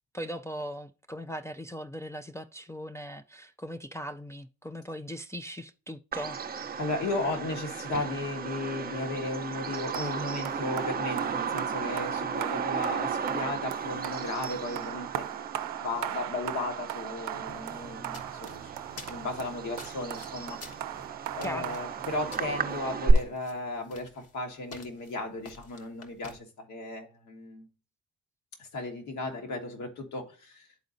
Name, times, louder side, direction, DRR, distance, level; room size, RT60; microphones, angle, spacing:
voice 1, 0.1-6.4 21.4-21.8, equal, 10° left, 0.3 m, -39 dB
Bird vocalization bird call bird song, 6.1-23.1, right 6 dB, 30° right, 0.6 m, -34 dB
voice 2, 6.8-15.3 15.8-18.7 19.1-20.6 21.4-27.6 28.6-30.8, left 2 dB, 70° left, 1.6 m, -35 dB
sound 1, 9.9-23.0, right 12 dB, 80° right, 0.5 m, -39 dB
sound 2, 17.5-26.4, left 3 dB, 55° left, 1.3 m, -50 dB
11.5 x 4.0 x 2.6 m
cardioid pair, 90°, 30 cm